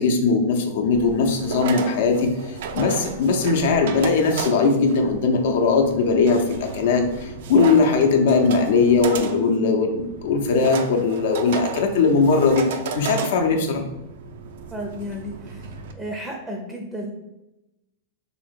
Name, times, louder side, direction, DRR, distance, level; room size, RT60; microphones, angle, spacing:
voice 1, 0.0-13.8, left 4 dB, 70° left, 4 dB, 0.7 m, -20 dB
sound 1, 0.9-15.9, right 5 dB, 65° right, 0.4 m, -34 dB
voice 2, 14.7-15.6 15.9-17.1, equal, 5° right, 1 dB, 0.5 m, -33 dB
2.9 x 2.9 x 4.3 m, 0.97 s
hypercardioid pair, 130°, 0 cm